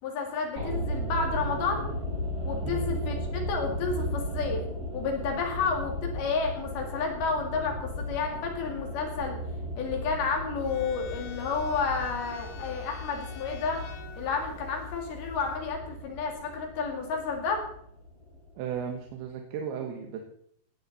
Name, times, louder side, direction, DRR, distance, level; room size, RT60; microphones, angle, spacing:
voice 1, 0.0-1.9 2.5-4.6 4.9-9.4 9.8-13.8 14.2-17.6, left 4 dB, 60° left, 2 dB, 4.0 m, -31 dB
sound 1, 0.6-18.8 19.0-19.1, equal, 15° right, 6.4 m, -36 dB
sound 2, 10.6-15.6, left 8 dB, 80° left, 3.7 m, -45 dB
voice 2, 18.6-20.2, right 7 dB, 85° right, 3 dB, 3.6 m, -35 dB
18.0 x 11.5 x 4.1 m, 0.67 s
omnidirectional pair, 5.2 m